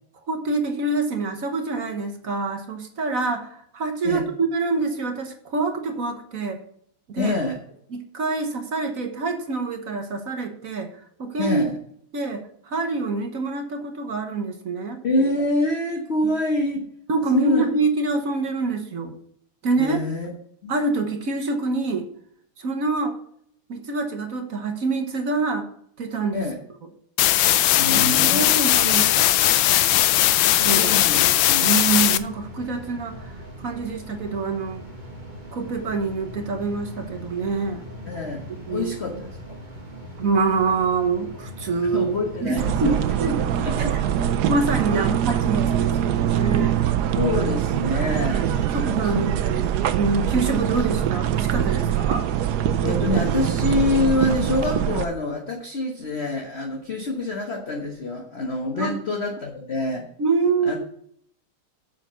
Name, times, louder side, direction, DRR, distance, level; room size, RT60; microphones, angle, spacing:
voice 1, 0.3-6.6 7.1-7.4 7.9-10.9 11.2-11.6 12.1-15.0 16.2-16.3 17.1-19.1 19.6-20.0 20.7-22.0 22.6-23.2 23.7-25.7 26.0-26.4 27.9-29.3 30.4-31.3 31.6-34.8 35.5-37.9 38.7-38.9 40.2-42.1 42.4-43.4 44.5-46.8 48.6-49.3 49.9-52.3 58.7-59.0 60.2-60.8, right 3 dB, 45° right, 5 dB, 1.3 m, -26 dB
voice 2, 7.2-7.6 11.4-11.8 15.0-16.8 17.3-17.6 19.8-20.3 20.6-20.7 26.3-26.5 27.8-28.5 30.6-31.7 38.1-38.4 38.7-39.6 41.9-43.0 43.6-43.9 44.9-45.1 47.1-49.6 52.8-60.0 60.6-60.8, left 2 dB, 40° left, 1 dB, 1.1 m, -26 dB
sound 1, 27.2-32.2, left 13 dB, 75° left, 1.2 m, -18 dB
sound 2, 32.1-46.5, equal, 25° right, 1.7 m, -40 dB
sound 3, 42.6-55.1, right 10 dB, 70° right, 0.9 m, -23 dB
7.3 x 6.9 x 6.7 m, 0.67 s
omnidirectional pair, 2.3 m